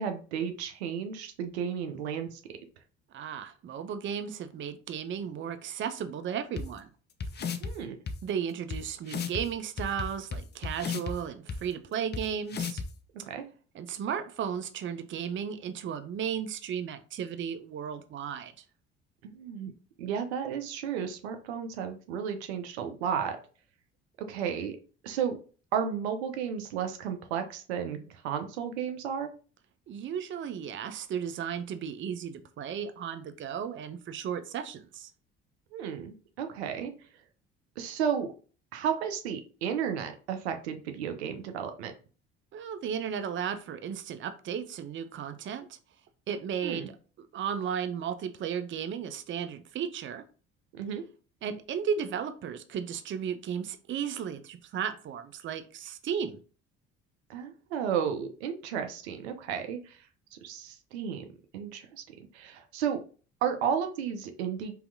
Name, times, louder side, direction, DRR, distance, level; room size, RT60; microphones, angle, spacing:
voice 1, 0.0-2.4 7.6-8.0 13.1-13.4 19.2-19.7 20.0-23.4 24.2-24.8 25.0-25.4 25.7-29.3 35.7-36.9 37.8-38.3 38.7-41.9 46.6-46.9 50.7-51.0 57.3-60.1 60.3-61.2 61.5-62.0 62.3-63.0 63.4-64.7, right 7 dB, 80° right, 0.6 m, -33 dB
voice 2, 3.1-6.9 7.4-7.5 8.2-12.8 13.7-18.5 29.9-35.1 42.5-45.8 46.3-46.9 47.2-50.2 51.4-56.4, right 8 dB, 40° right, 0.5 m, -35 dB
sound 1, 6.6-6.7 7.2-7.7 8.1-8.2 8.7-8.8 9.1-9.4 9.8-11.1 11.5-11.6 12.1-12.2 12.5-12.9, left 5 dB, 30° left, 0.5 m, -33 dB
3.8 x 2.8 x 2.6 m
hypercardioid pair, 55°, 32 cm